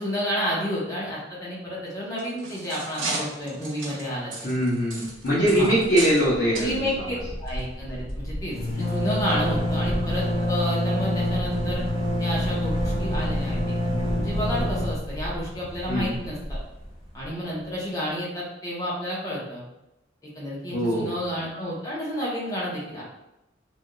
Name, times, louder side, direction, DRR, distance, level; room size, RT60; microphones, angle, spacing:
voice 1, 0.0-4.5 5.5-5.7 6.6-11.8 12.2-16.6 17.1-19.6 20.2-23.0, equal, 20° left, -6 dB, 0.9 m, -31 dB
sound 1, 2.0-6.3 6.5-6.7 7.5-7.6 8.1-8.2, right 2 dB, 80° right, 0.7 m, -34 dB
voice 2, 4.4-7.1 9.3-9.4 15.9-16.2 20.7-21.2, equal, 50° left, -10 dB, 0.8 m, -23 dB
sound 2, 5.5-6.0 6.2-6.4 6.6-17.3, left 1 dB, 35° right, 1.2 m, -27 dB
3.4 x 2.5 x 2.2 m, 0.93 s
head